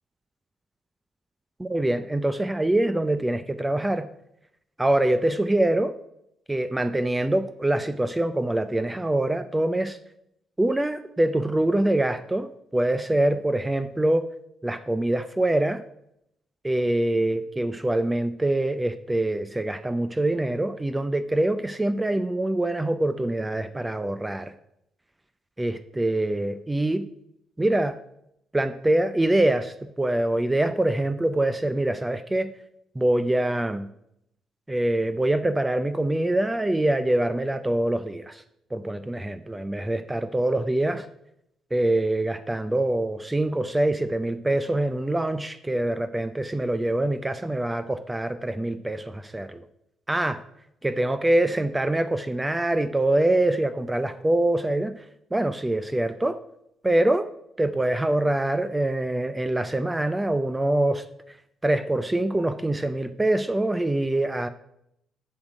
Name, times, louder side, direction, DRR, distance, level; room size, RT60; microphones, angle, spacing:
voice 1, 1.6-4.1 4.8-5.9 6.5-10.0 10.6-14.3 14.6-15.8 16.6-24.5 25.6-27.0 27.6-28.0 28.5-32.5 33.0-33.9 34.7-38.4 38.7-41.1 41.7-49.6 50.1-50.4 50.8-54.9 55.3-56.4 56.8-57.3 57.6-61.0 61.6-64.5, right 1 dB, 15° right, 11 dB, 0.5 m, -24 dB
7.1 x 6.4 x 5.0 m, 0.78 s
cardioid pair, 90°, 0 cm